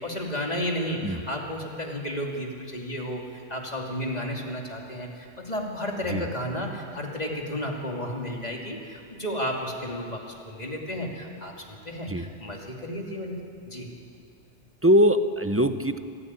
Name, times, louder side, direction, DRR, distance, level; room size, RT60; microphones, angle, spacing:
voice 1, 0.0-13.3 13.7-13.9, equal, 35° left, 0 dB, 2.9 m, -32 dB
voice 2, 14.8-16.0, equal, 15° right, 9 dB, 0.6 m, -21 dB
25.0 x 14.0 x 9.7 m, 2.4 s
omnidirectional pair, 1.2 m